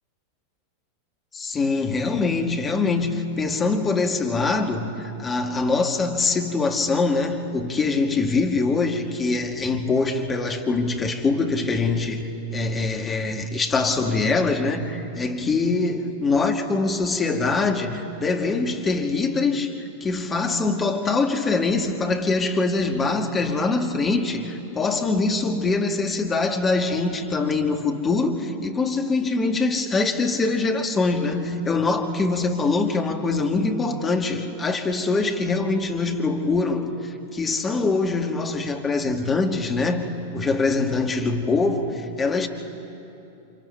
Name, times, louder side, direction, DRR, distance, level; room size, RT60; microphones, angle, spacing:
voice 1, 1.3-40.0 40.3-42.5, left 3 dB, 20° left, 4 dB, 1.9 m, -23 dB
30.0 x 26.0 x 4.5 m, 3.0 s
figure-of-eight pair, 90°, 0 cm